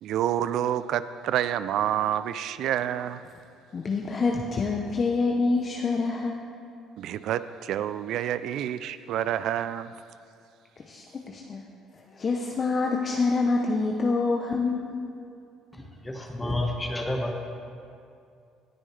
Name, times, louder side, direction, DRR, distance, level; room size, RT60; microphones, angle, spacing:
voice 1, 0.0-3.2 7.0-9.9, right 11 dB, 70° right, 14 dB, 0.3 m, -28 dB
voice 2, 3.7-6.4 10.8-11.6 12.1-14.9, left 3 dB, 40° left, 1 dB, 0.7 m, -26 dB
voice 3, 15.7-17.5, left 1 dB, 15° left, 2 dB, 1.3 m, -30 dB
18.0 x 6.2 x 3.3 m, 2.4 s
supercardioid pair, 75°, 0 cm